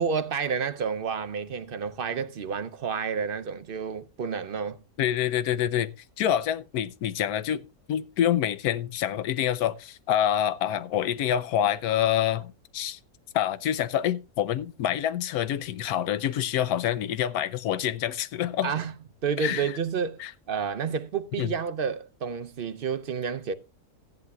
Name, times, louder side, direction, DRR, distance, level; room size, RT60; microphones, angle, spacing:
voice 1, 0.0-4.8 18.6-18.9 19.2-20.2 20.5-23.5, right 6 dB, 55° right, 0.7 m, -30 dB
voice 2, 5.0-5.9 6.2-13.0 13.3-18.7 19.4-19.7 20.2-20.3 21.4-21.5, left 11 dB, 80° left, 1.2 m, -27 dB
15.0 x 11.0 x 2.3 m
omnidirectional pair, 1.6 m